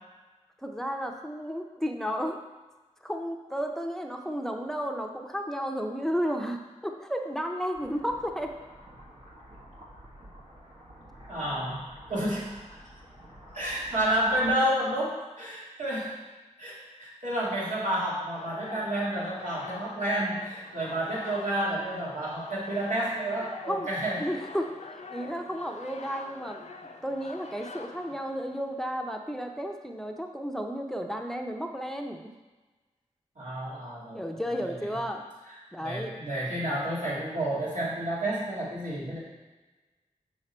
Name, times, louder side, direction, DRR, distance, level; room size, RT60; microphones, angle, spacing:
voice 1, 0.6-2.4 3.0-8.5 23.7-23.9 24.2-26.6 27.0-32.3 34.1-35.2 35.7-36.2, equal, 5° left, 3 dB, 0.7 m, -33 dB
sound 1, 7.7-14.6, equal, 65° right, 1.4 m, -50 dB
voice 2, 11.3-12.6 13.5-16.2 16.6-24.3 33.4-34.4 34.6-35.0 35.8-39.2, right 1 dB, 80° right, -6 dB, 2.3 m, -30 dB
sound 2, 18.3-28.8, left 4 dB, 65° left, 0.6 m, -45 dB
6.5 x 5.1 x 4.4 m, 1.2 s
wide cardioid pair, 65°, 13 cm